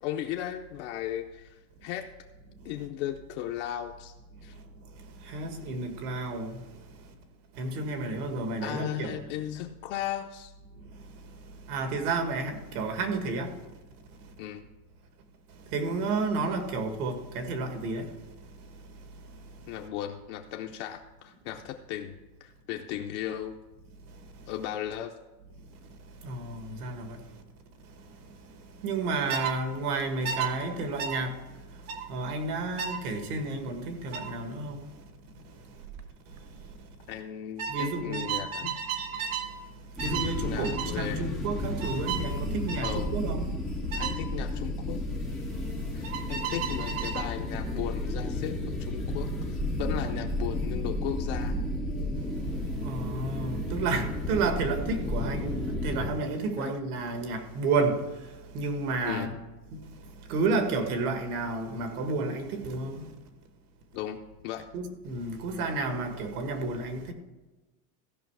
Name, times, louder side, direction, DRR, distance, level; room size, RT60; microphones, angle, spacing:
voice 1, 0.0-2.1 2.6-4.1 4.4-4.5 8.6-10.5 14.4-14.7 19.7-23.6 24.5-25.1 37.1-38.7 40.4-41.3 42.8-43.1 43.9-45.0 45.9-51.6 56.6-56.7 59.0-59.4 63.9-64.7, left 11 dB, 55° left, 0.6 m, -36 dB
voice 2, 5.3-6.6 7.6-9.2 11.7-13.5 15.7-18.1 26.2-27.2 28.8-31.3 32.1-34.8 37.7-38.3 40.0-43.5 52.8-58.0 58.5-59.3 60.3-63.1 64.7-67.1, right 3 dB, 80° right, 1.9 m, -31 dB
sound 1, 29.3-29.6 30.2-30.5 31.0-31.2 31.9-32.1 32.8-33.0 34.1-34.3 35.8-36.0 36.3-36.7 37.6-39.5 40.0-40.3 40.6-40.9 41.8-42.3 42.7-43.0 43.9-44.2 46.0-47.3, right 7 dB, 60° right, 1.3 m, -33 dB
sound 2, 40.0-56.1, left 1 dB, ahead, 0.4 m, -32 dB
15.0 x 5.6 x 4.7 m
supercardioid pair, 175°, 45 cm